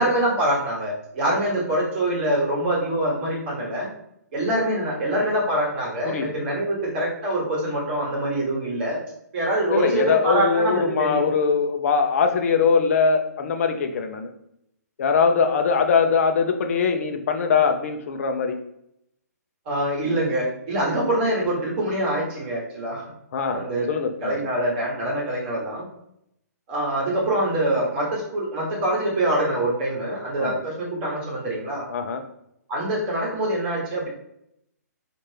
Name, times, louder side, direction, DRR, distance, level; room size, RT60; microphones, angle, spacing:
voice 1, 0.0-3.9 4.3-9.0 9.3-11.3 19.7-23.0 23.5-23.9 24.2-25.9 26.7-31.9 32.7-34.1, right 1 dB, 35° right, -4 dB, 1.1 m, -24 dB
voice 2, 9.7-14.3 15.0-18.6 23.3-24.4 30.4-30.6 31.9-32.2, left 5 dB, 55° left, 5 dB, 0.5 m, -22 dB
4.2 x 2.5 x 3.2 m, 0.76 s
hypercardioid pair, 145°, 9 cm